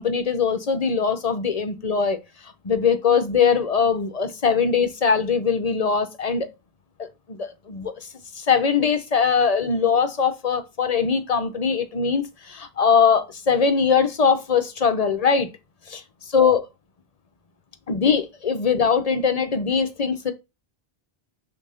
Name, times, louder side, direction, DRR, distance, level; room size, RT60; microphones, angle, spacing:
voice 1, 0.0-2.2 2.4-6.5 7.0-7.9 8.3-15.5 15.9-16.0 16.3-16.6 17.9-20.3, left 6 dB, 40° left, 0.8 m, -21 dB
6.3 x 2.8 x 5.6 m
omnidirectional pair, 1.0 m